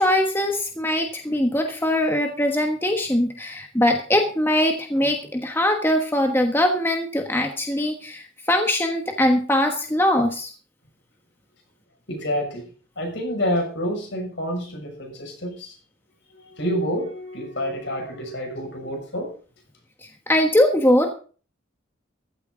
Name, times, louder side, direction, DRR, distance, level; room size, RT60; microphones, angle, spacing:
voice 1, 0.0-10.5 20.3-21.1, left 1 dB, 10° left, 4 dB, 1.3 m, -21 dB
voice 2, 12.1-12.7 13.0-15.7 16.5-19.3, equal, 60° left, 2 dB, 6.5 m, -28 dB
15.0 x 12.5 x 3.9 m, 0.39 s
head